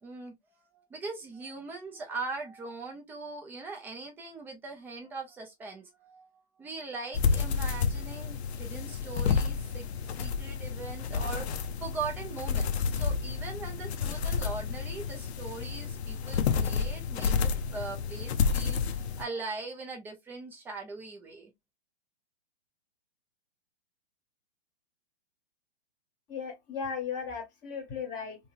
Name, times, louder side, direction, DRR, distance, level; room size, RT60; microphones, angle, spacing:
voice 1, 0.0-9.9 10.2-21.5, right 4 dB, 5° right, 0.4 m, -41 dB
sound 1, 7.1-19.3, left 6 dB, 80° left, 0.5 m, -30 dB
voice 2, 26.3-28.4, left 6 dB, 25° left, 1.0 m, -36 dB
2.7 x 2.7 x 2.3 m
hypercardioid pair, 140°, 32 cm